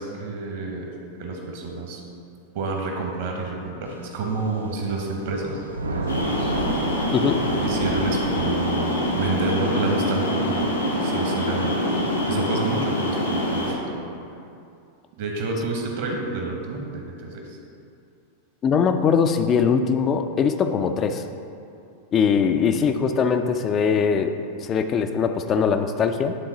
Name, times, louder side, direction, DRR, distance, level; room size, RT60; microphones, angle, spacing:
voice 1, 0.0-2.0 2.5-6.5 7.6-11.8 12.3-14.1 15.2-17.6, right 3 dB, 50° right, 1 dB, 1.2 m, -29 dB
Thunder / Rain, 3.9-13.8, right 2 dB, 75° right, 0.5 m, -34 dB
sound 1, 6.1-13.7, left 1 dB, 85° left, 1.1 m, -25 dB
voice 2, 18.6-21.2 22.1-26.4, left 6 dB, 30° left, 8 dB, 0.4 m, -21 dB
10.5 x 3.8 x 4.0 m, 2.5 s
figure-of-eight pair, 90°, 0 cm